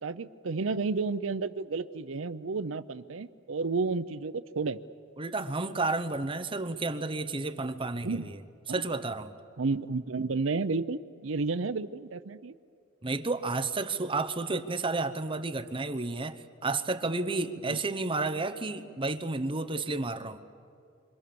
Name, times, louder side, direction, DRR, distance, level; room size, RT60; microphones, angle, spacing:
voice 1, 0.0-4.8 8.0-8.3 8.7-8.8 9.6-12.5 17.6-17.8, right 4 dB, 70° right, 13 dB, 0.7 m, -31 dB
voice 2, 5.2-8.4 8.7-9.3 13.0-20.4, right 3 dB, 25° right, 7 dB, 0.9 m, -31 dB
29.5 x 25.0 x 7.0 m, 2.4 s
head